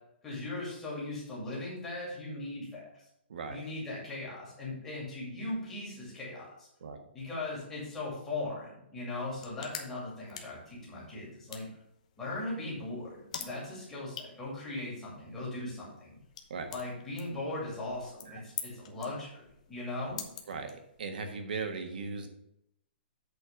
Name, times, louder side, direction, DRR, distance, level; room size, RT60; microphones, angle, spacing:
voice 1, 0.2-3.0 3.5-6.7 7.1-11.7 12.2-16.1 16.7-20.2, left 2 dB, 5° left, -7 dB, 2.3 m, -39 dB
voice 2, 3.3-3.6 6.8-7.0 16.5-16.7 18.3-18.4 20.5-22.3, right 4 dB, 50° right, 5 dB, 1.4 m, -38 dB
sound 1, 9.2-21.2, left 7 dB, 35° left, 0.9 m, -48 dB
8.1 x 4.3 x 6.4 m, 0.77 s
hypercardioid pair, 180°, 6 cm